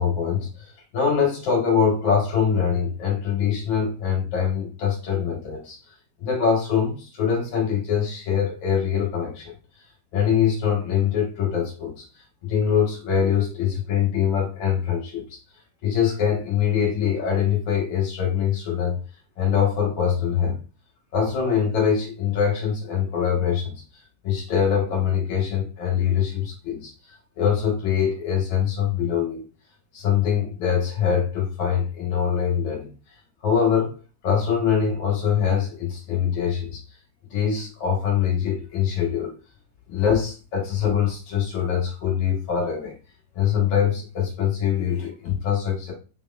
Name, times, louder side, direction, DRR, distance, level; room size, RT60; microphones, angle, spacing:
voice 1, 0.0-5.8 6.2-9.5 10.1-15.4 15.8-19.0 19.4-20.6 21.1-23.7 24.2-26.9 27.4-29.4 29.9-32.9 33.4-34.0 34.2-36.8 37.3-39.3 39.9-42.9 43.3-45.9, left 7 dB, 45° left, 1.5 m, -23 dB
4.3 x 2.9 x 2.3 m
figure-of-eight pair, 90°, 0 cm